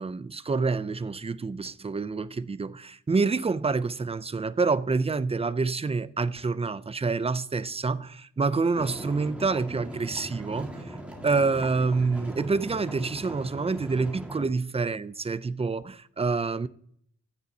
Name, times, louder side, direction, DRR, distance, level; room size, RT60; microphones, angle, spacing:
voice 1, 0.0-11.0 11.2-16.7, right 4 dB, 20° right, 0.4 m, -27 dB
sound 1, 8.7-14.4, right 1 dB, 5° right, 1.8 m, -40 dB
15.0 x 6.6 x 2.7 m
wide cardioid pair, 130°, 31 cm